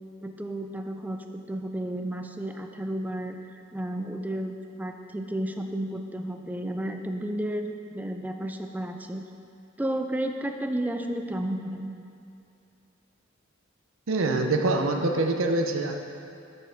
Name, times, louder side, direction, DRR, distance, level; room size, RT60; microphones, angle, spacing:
voice 1, 0.2-3.4 3.7-9.2 9.8-12.0, right 1 dB, 10° right, 5 dB, 0.3 m, -32 dB
voice 2, 14.1-15.9, right 2 dB, 75° right, 4 dB, 0.6 m, -25 dB
9.4 x 5.4 x 3.4 m, 2.6 s
head